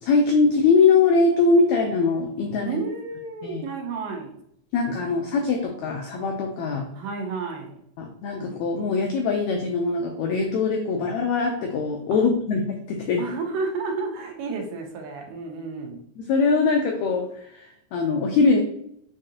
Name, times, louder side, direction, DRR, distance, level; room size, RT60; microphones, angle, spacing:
voice 1, 0.0-2.8 3.4-3.6 4.7-6.9 8.0-13.2 16.2-18.6, left 4 dB, 90° left, 3 dB, 1.6 m, -22 dB
voice 2, 2.7-4.3 6.9-7.8 12.1-12.3 13.2-16.0, right 4 dB, 85° right, 2 dB, 2.5 m, -31 dB
6.8 x 2.5 x 2.8 m, 0.71 s
omnidirectional pair, 3.8 m